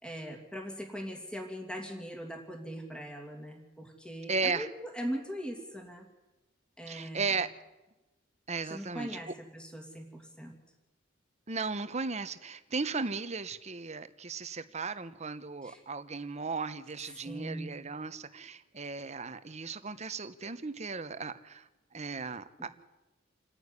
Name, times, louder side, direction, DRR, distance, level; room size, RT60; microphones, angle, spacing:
voice 1, 0.0-6.1 6.8-7.4 8.6-10.6 15.6-15.8 17.0-17.7 22.6-22.7, equal, 5° left, 2 dB, 2.8 m, -41 dB
voice 2, 4.3-4.7 6.9-7.5 8.5-9.1 11.5-21.7 21.9-22.7, right 4 dB, 35° right, 12 dB, 1.0 m, -36 dB
28.0 x 9.7 x 9.8 m, 1.1 s
head